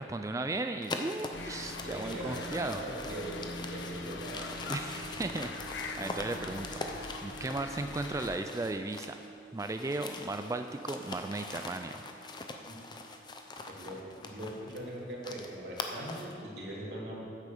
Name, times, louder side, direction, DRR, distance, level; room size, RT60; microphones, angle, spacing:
voice 1, 0.0-2.8 4.7-6.7 7.2-9.1 9.5-12.0, right 2 dB, 20° right, 7 dB, 0.3 m, -36 dB
sound 1, 0.8-9.3 9.6-16.4, left 3 dB, 25° left, 0.7 m, -43 dB
sound 2, 1.3-8.4, left 3 dB, 85° left, 0.7 m, -43 dB
voice 2, 1.4-4.4 12.7-12.8 13.7-17.2, right 1 dB, 65° right, -5 dB, 3.1 m, -41 dB
sound 3, 2.2-16.4, right 4 dB, 45° left, 1.6 m, -53 dB
10.0 x 8.3 x 6.8 m, 2.5 s
head